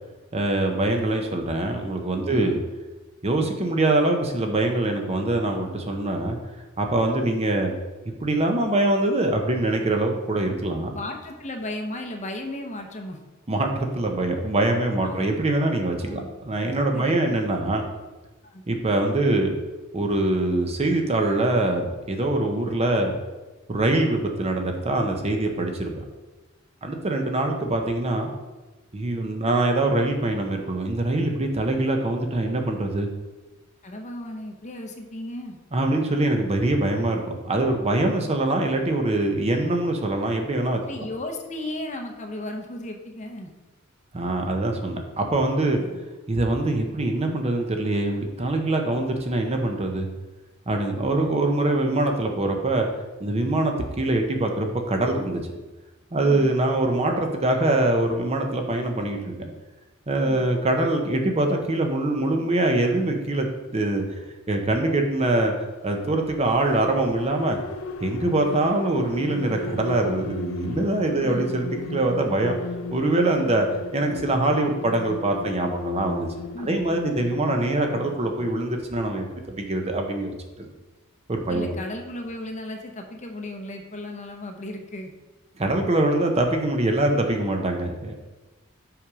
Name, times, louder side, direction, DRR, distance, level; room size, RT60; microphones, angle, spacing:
voice 1, 0.3-2.6 3.2-6.4 6.8-7.7 8.2-10.9 13.5-17.8 18.7-19.5 19.9-23.1 23.7-26.0 26.8-28.3 28.9-33.1 35.7-40.8 44.1-45.8 46.3-50.1 50.7-52.9 53.2-55.4 56.1-59.5 60.1-64.0 64.5-67.6 68.0-72.5 72.9-73.7 73.9-76.3 76.6-80.7 81.3-81.8 85.6-88.1, right 2 dB, 30° right, 3 dB, 0.7 m, -24 dB
voice 2, 2.3-2.6 7.2-7.4 10.9-13.2 15.0-15.3 16.0-16.3 16.9-17.4 18.4-18.6 33.8-35.6 40.9-43.5 45.8-46.0 56.2-56.6 60.2-60.5 71.2-71.5 76.5-77.3 81.5-85.1, left 1 dB, 35° left, 3 dB, 0.8 m, -35 dB
sound 1, 66.4-78.5, left 2 dB, 70° left, 0.4 m, -35 dB
5.8 x 5.3 x 4.8 m, 1.2 s
head